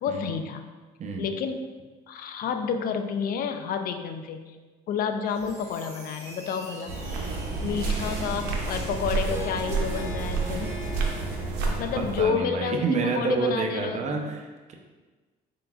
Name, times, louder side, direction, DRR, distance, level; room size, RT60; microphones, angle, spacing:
voice 1, 0.0-0.7 1.2-1.6 2.1-4.5 4.9-6.9 7.6-10.8 11.8-14.2, left 6 dB, 60° left, 7 dB, 0.4 m, -30 dB
sound 1, 5.3-9.7, right 1 dB, 70° right, 1.3 m, -44 dB
Harp, 6.7-13.1, left 2 dB, 15° right, 0.8 m, -43 dB
sound 2, 6.9-12.2, right 4 dB, 85° right, 0.7 m, -29 dB
voice 2, 12.0-14.7, right 4 dB, 45° right, 2 dB, 0.6 m, -28 dB
4.4 x 3.8 x 2.4 m, 1.3 s
cardioid pair, 110°, 17 cm